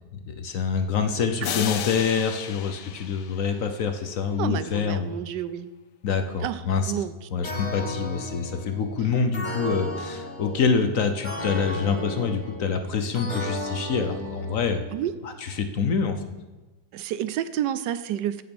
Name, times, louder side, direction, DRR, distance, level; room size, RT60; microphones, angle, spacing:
voice 1, 0.3-5.1 6.0-6.9 7.3-14.9 15.2-16.2, left 5 dB, 60° left, 7 dB, 1.1 m, -26 dB
sound 1, 1.4-4.1, left 10 dB, 80° left, 1.3 m, -34 dB
voice 2, 4.4-5.7 6.4-6.6 6.9-7.1 14.9-15.1 16.9-18.4, right 10 dB, 80° right, 14 dB, 1.2 m, -29 dB
sound 2, 7.4-15.1, left 1 dB, 25° left, 2.8 m, -34 dB
15.5 x 5.9 x 5.4 m, 1.2 s
omnidirectional pair, 1.8 m